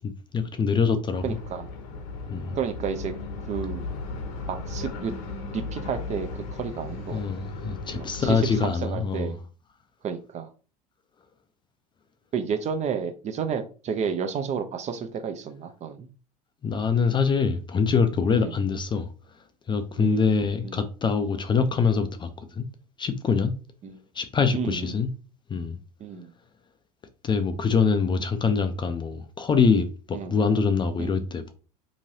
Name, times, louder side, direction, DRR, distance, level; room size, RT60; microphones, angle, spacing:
voice 1, 0.3-1.2 2.3-2.6 7.1-9.3 16.6-19.1 19.7-22.3 22.6-22.7 23.0-23.5 24.2-25.1 25.5-25.8 27.2-31.5, left 5 dB, 20° left, 0.4 m, -24 dB
sound 1, 1.1-8.7, left 3 dB, 60° left, 0.8 m, -36 dB
voice 2, 1.2-1.7 2.5-3.1 3.5-3.8 4.5-5.1 5.5-7.2 7.9-9.4 10.0-10.5 12.3-16.1 18.3-18.5 20.0-20.8 23.8-24.0 24.5-24.9 26.0-26.3 30.1-30.4 31.0-31.2, right 6 dB, 35° right, 0.5 m, -31 dB
3.0 x 2.7 x 2.7 m
hypercardioid pair, 80°, 21 cm